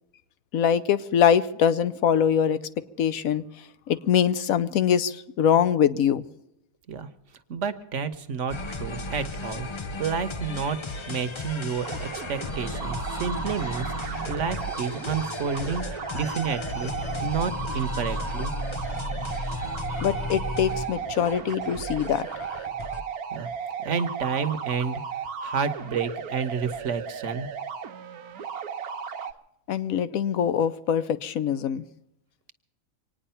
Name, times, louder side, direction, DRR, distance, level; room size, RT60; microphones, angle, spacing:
voice 1, 0.5-2.6 3.0-6.2 20.0-22.3 29.7-31.8, left 8 dB, 75° left, 14 dB, 1.2 m, -23 dB
voice 2, 7.5-10.8 11.1-18.5 23.3-23.5 23.8-25.0 25.4-27.5, right 6 dB, 60° right, 10 dB, 1.3 m, -30 dB
sound 1, 8.5-23.0, left 2 dB, 50° left, 0.3 m, -34 dB
sound 2, 11.8-29.3, right 6 dB, 85° right, 1.4 m, -35 dB
25.0 x 9.8 x 5.6 m, 0.81 s
omnidirectional pair, 1.5 m